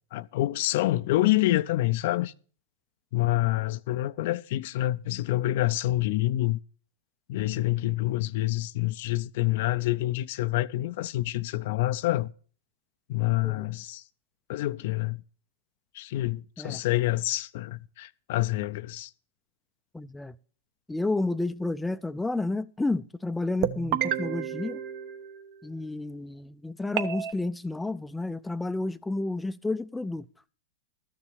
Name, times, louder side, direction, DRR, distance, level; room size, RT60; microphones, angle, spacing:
voice 1, 0.1-2.3 3.1-6.6 7.3-12.3 13.1-14.0 14.5-15.2 15.9-19.1, left 16 dB, 60° left, 0.5 m, -27 dB
voice 2, 19.9-20.4 20.9-24.8 25.6-30.3, left 2 dB, 5° left, 0.5 m, -31 dB
sound 1, 23.6-25.8 27.0-27.3, right 10 dB, 45° right, 1.0 m, -31 dB
13.0 x 6.9 x 6.8 m
hypercardioid pair, 115°, 0 cm